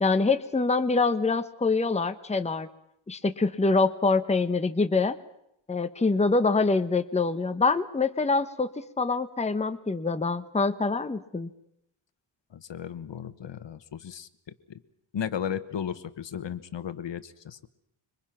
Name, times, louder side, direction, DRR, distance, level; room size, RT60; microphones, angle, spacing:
voice 1, 0.0-2.7 3.1-5.2 5.7-11.5, left 3 dB, 15° left, 10 dB, 1.0 m, -25 dB
voice 2, 12.5-14.3 14.7-14.8 15.1-17.7, left 8 dB, 60° left, 13 dB, 1.3 m, -35 dB
26.0 x 24.5 x 5.9 m, 0.79 s
wide cardioid pair, 140°, 49 cm